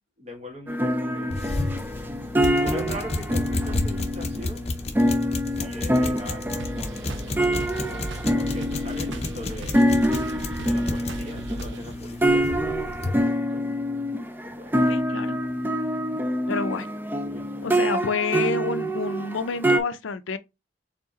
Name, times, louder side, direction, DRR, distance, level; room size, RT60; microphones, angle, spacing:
voice 1, 0.2-1.5 2.6-4.7 5.5-6.7 7.4-10.0 10.6-13.7 14.4-14.8 17.2-17.8, left 1 dB, 35° right, 1.7 m, -40 dB
sound 1, 0.7-19.8, equal, 10° right, 0.4 m, -26 dB
sound 2, 1.3-13.2, left 2 dB, 35° left, 0.6 m, -32 dB
sound 3, 6.6-12.0, right 1 dB, 75° right, 0.8 m, -37 dB
voice 2, 14.9-15.4 16.5-16.9 17.6-20.4, left 5 dB, 85° left, 0.5 m, -28 dB
4.6 x 3.7 x 2.9 m
head